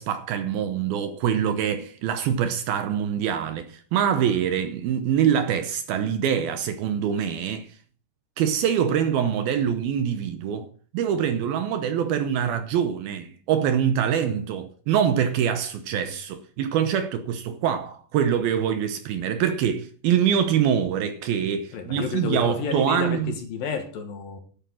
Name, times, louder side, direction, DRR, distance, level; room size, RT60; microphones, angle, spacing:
voice 1, 0.0-7.7 8.4-10.7 10.9-23.3, right 8 dB, 75° right, 2.4 m, -24 dB
voice 2, 21.7-24.4, left 6 dB, 65° left, 2.8 m, -30 dB
10.5 x 8.9 x 6.2 m
omnidirectional pair, 5.0 m